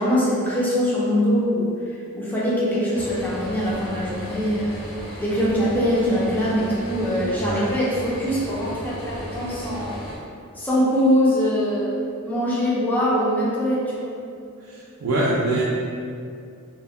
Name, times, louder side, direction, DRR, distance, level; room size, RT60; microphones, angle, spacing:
voice 1, 0.0-1.7 2.1-4.8 5.2-10.0 10.5-12.0 12.2-14.1, equal, 10° left, -8 dB, 0.5 m, -22 dB
sound 1, 2.9-10.2, equal, 80° left, 0.6 m, -35 dB
voice 2, 7.3-7.6 14.6-15.6, right 2 dB, 75° right, -7 dB, 0.4 m, -24 dB
2.1 x 2.1 x 3.5 m, 2.4 s
head